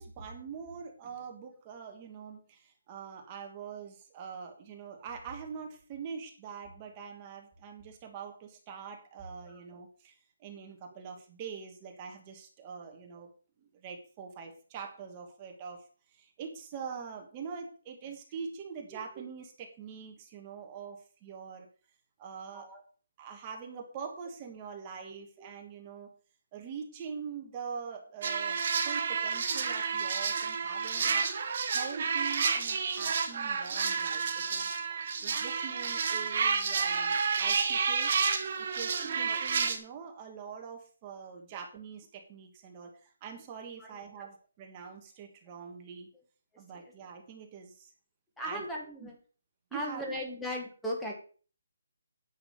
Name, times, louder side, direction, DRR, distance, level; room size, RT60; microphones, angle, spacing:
voice 1, 0.0-13.3 13.6-21.7 22.2-22.7 23.2-26.1 26.5-34.7 35.2-38.1 38.6-46.1 46.6-47.9 48.4-48.6 49.0-49.1 49.7-50.2, right 6 dB, 15° right, 3 dB, 1.4 m, -44 dB
sound 1, 28.2-39.8, right 5 dB, 35° right, 1.5 m, -30 dB
voice 2, 39.0-39.4 43.8-44.3 48.4-49.2 49.7-51.1, equal, 5° left, -1 dB, 1.5 m, -38 dB
9.8 x 6.2 x 6.3 m, 0.40 s
hypercardioid pair, 175°, 0 cm